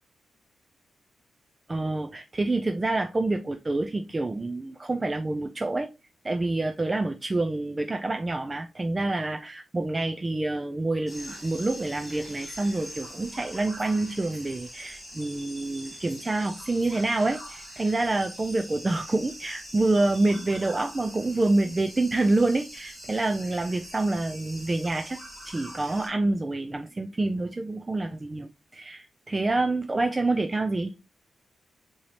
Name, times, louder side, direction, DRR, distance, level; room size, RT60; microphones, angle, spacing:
voice 1, 1.7-5.9 6.2-25.2 25.4-30.9, right 2 dB, 25° right, 0.3 m, -27 dB
sound 1, 11.1-26.1, equal, 5° right, 2.4 m, -43 dB
4.5 x 2.8 x 2.8 m
cardioid pair, 75°, 0 cm